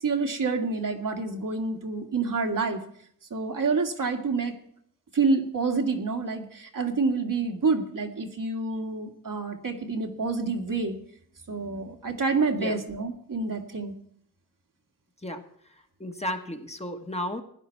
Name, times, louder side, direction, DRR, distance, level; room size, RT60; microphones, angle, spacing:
voice 1, 0.0-2.8 3.3-4.5 5.1-11.0 11.5-13.9, right 4 dB, 75° right, 2 dB, 1.9 m, -28 dB
voice 2, 16.0-17.4, left 1 dB, 20° left, 5 dB, 1.3 m, -33 dB
16.0 x 10.5 x 4.6 m, 0.65 s
wide cardioid pair, 70°, 33 cm